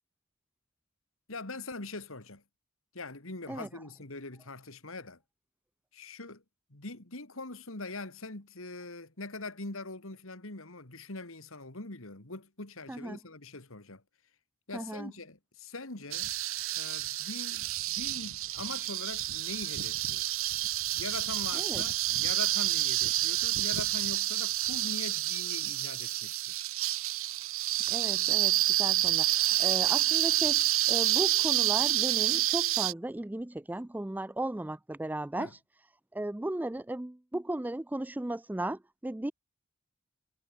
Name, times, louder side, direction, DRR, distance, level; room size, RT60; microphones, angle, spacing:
voice 1, 1.3-2.4 2.9-5.2 5.9-6.4 6.7-14.0 14.7-16.3 16.7-20.2 21.0-26.5 35.4-35.5, left 3 dB, 65° left, 2.7 m, -42 dB
voice 2, 12.9-13.2 14.7-15.1 21.5-21.8 27.9-35.5 36.1-39.3, right 1 dB, 10° right, 0.3 m, -36 dB
sound 1, 16.1-32.9, right 14 dB, 70° right, 1.1 m, -29 dB
head